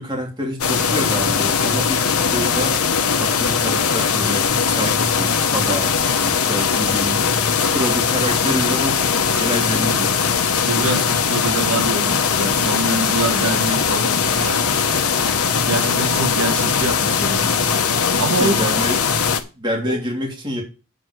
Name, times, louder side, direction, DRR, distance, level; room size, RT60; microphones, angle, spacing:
voice 1, 0.0-2.8 3.1-5.9 6.2-7.2 7.6-10.1 18.4-19.0 19.5-20.6, equal, 20° right, 3.0 m, -27 dB
sound 1, 0.6-19.4, left 6 dB, 85° left, 1.2 m, -20 dB
voice 2, 10.6-14.7 15.6-17.5 18.2-18.8 19.8-20.0, right 2 dB, 80° right, 1.8 m, -25 dB
8.8 x 4.8 x 7.7 m
head